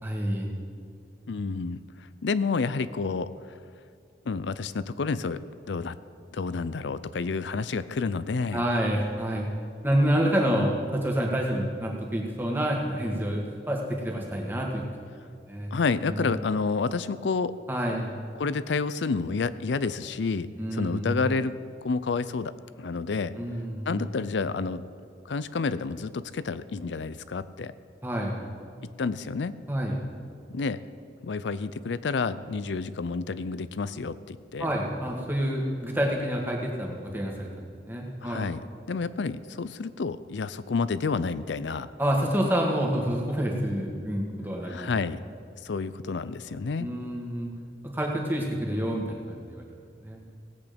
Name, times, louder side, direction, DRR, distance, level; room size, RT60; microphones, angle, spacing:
voice 1, 0.0-0.5 8.5-9.5 9.8-14.8 15.5-15.8 16.0-16.3 17.7-18.1 20.6-21.3 23.4-24.0 28.0-28.4 29.7-30.0 34.6-38.4 42.0-44.9 46.8-47.5 47.8-49.7 50.0-50.2, equal, 10° right, -1 dB, 1.7 m, -28 dB
voice 2, 1.3-1.8 2.2-3.6 4.3-5.4 5.7-6.0 6.3-8.6 15.7-17.6 18.4-23.3 23.9-24.8 25.3-27.7 29.0-29.5 30.5-30.8 31.2-34.7 38.2-38.6 38.9-41.9 44.7-45.2 45.6-46.9, left 4 dB, 85° left, 15 dB, 0.5 m, -29 dB
17.5 x 8.5 x 5.2 m, 2.3 s
head